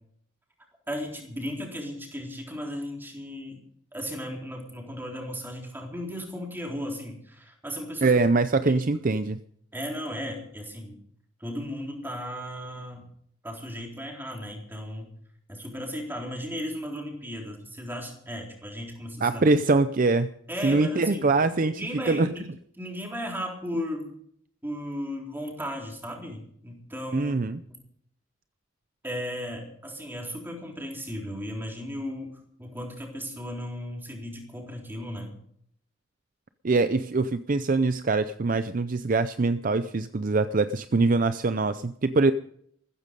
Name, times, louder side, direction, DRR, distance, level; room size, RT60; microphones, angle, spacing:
voice 1, 0.9-3.6 3.9-8.1 8.6-8.7 9.7-11.0 11.4-13.1 13.4-15.1 15.5-19.4 20.5-21.3 21.6-22.4 22.8-24.1 24.6-27.3 27.7-27.8 29.0-35.4, equal, 10° right, 0 dB, 3.9 m, -35 dB
voice 2, 8.0-9.4 19.2-20.3 20.6-22.3 27.1-27.6 36.6-42.3, right 3 dB, 45° right, 12 dB, 0.5 m, -23 dB
15.5 x 14.0 x 5.3 m, 0.65 s
head